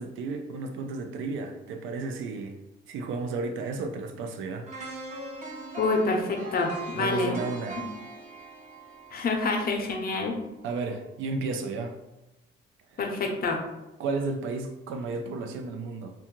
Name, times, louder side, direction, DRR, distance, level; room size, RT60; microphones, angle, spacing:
voice 1, 0.0-2.6 2.9-4.7 6.9-7.8 10.6-12.0 14.0-16.1, right 3 dB, 80° right, 6 dB, 0.4 m, -33 dB
sound 1, 4.7-10.7 11.1-11.2, right 3 dB, 40° right, 0.7 m, -41 dB
voice 2, 5.8-7.4 7.8-7.9 9.1-10.4 13.0-13.6, left 3 dB, 50° left, 2 dB, 0.6 m, -27 dB
2.6 x 2.2 x 2.9 m, 0.96 s
cardioid pair, 90°, 20 cm